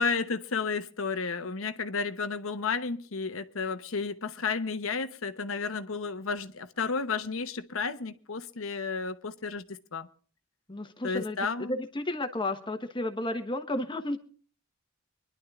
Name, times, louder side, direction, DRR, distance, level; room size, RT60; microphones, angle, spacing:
voice 1, 0.0-10.1 11.0-11.8, left 4 dB, 80° left, 0.9 m, -32 dB
voice 2, 10.7-11.4 11.7-14.2, left 1 dB, 25° left, 1.2 m, -32 dB
25.0 x 11.0 x 2.4 m
head